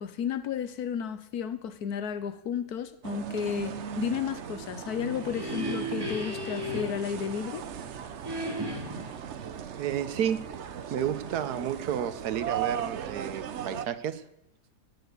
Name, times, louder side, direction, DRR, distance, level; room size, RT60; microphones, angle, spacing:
voice 1, 0.0-7.6, left 7 dB, 75° left, 1.4 m, -33 dB
sound 1, 3.0-13.9, right 8 dB, 55° right, 0.9 m, -38 dB
sound 2, 4.8-7.8 8.2-9.2, equal, 15° right, 2.1 m, -36 dB
voice 2, 9.7-10.4 10.9-14.2, right 9 dB, 75° right, 1.4 m, -31 dB
17.5 x 6.8 x 8.2 m
omnidirectional pair, 1.7 m